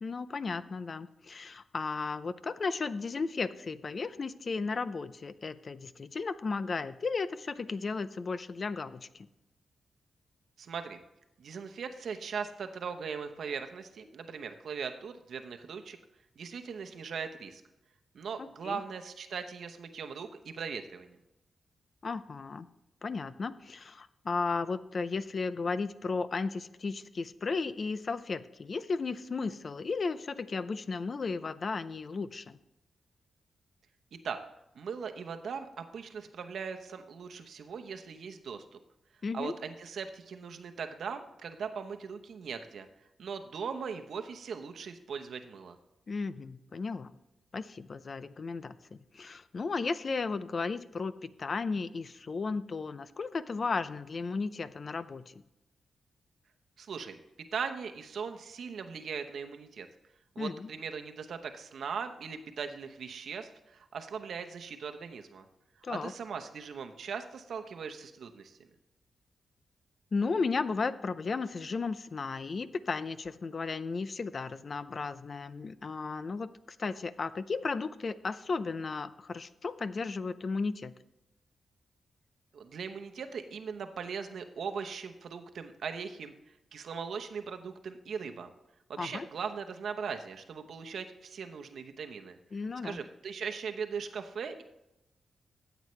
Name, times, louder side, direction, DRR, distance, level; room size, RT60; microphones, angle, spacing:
voice 1, 0.0-9.3 18.4-18.8 22.0-22.7 23.0-32.6 39.2-39.5 46.1-47.2 47.5-55.3 60.4-60.7 65.8-66.1 70.1-76.5 76.8-80.9 89.0-89.3 92.5-93.0, left 4 dB, 45° left, 15 dB, 0.5 m, -34 dB
voice 2, 10.6-11.0 11.4-16.0 16.4-17.6 18.1-21.2 34.1-34.4 34.7-38.6 39.3-42.9 43.2-45.8 56.8-57.2 57.5-59.9 60.3-65.5 65.9-68.7 82.5-88.5 88.9-92.4 92.8-94.6, right 6 dB, 75° right, 6 dB, 0.9 m, -39 dB
13.5 x 8.0 x 3.2 m, 0.91 s
cardioid pair, 95°, 0 cm